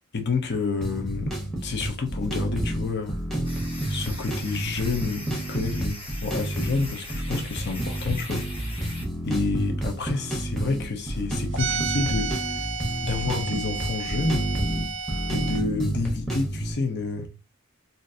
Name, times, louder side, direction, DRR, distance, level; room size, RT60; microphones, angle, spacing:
voice 1, 0.1-1.4 1.6-3.2 3.9-6.0 6.2-8.5 9.3-12.3 13.0-14.5 15.3-17.3, left 4 dB, 50° left, 0.8 m, -29 dB
sound 1, 0.8-16.7, right 1 dB, ahead, 0.9 m, -30 dB
sound 2, 3.4-9.1, left 2 dB, 25° left, 1.2 m, -41 dB
sound 3, 11.5-15.6, right 5 dB, 60° right, 0.4 m, -32 dB
3.6 x 2.7 x 2.6 m
head